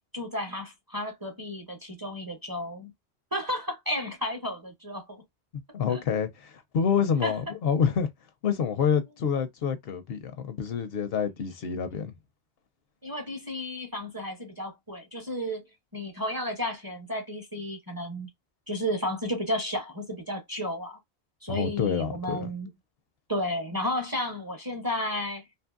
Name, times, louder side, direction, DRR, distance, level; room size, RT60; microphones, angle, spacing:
voice 1, 0.1-2.9 3.3-5.2 5.9-6.0 7.2-7.3 13.0-15.6 15.9-18.3 18.7-21.0 21.4-22.7 23.3-25.4, left 1 dB, 25° right, 0.6 m, -32 dB
voice 2, 5.7-8.1 8.4-12.1 21.5-22.5, left 7 dB, 70° left, 0.8 m, -27 dB
2.8 x 2.6 x 2.3 m
omnidirectional pair, 1.1 m